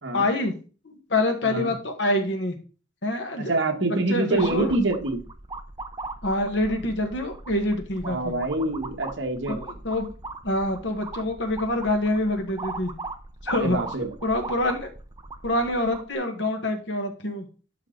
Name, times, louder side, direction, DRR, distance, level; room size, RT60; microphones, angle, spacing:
voice 1, 0.1-0.5 0.8-2.6 3.0-3.5 3.8-4.7 6.2-8.3 9.5-10.1 10.4-12.9 13.4-13.8 14.2-14.9 15.4-17.4, left 1 dB, 60° left, 4 dB, 1.6 m, -26 dB
voice 2, 3.4-5.2 8.0-9.8 13.5-14.1, right 2 dB, 65° right, 4 dB, 1.5 m, -26 dB
sound 1, 4.4-16.1, right 3 dB, 20° right, 0.6 m, -39 dB
11.5 x 4.3 x 3.9 m, 0.36 s
head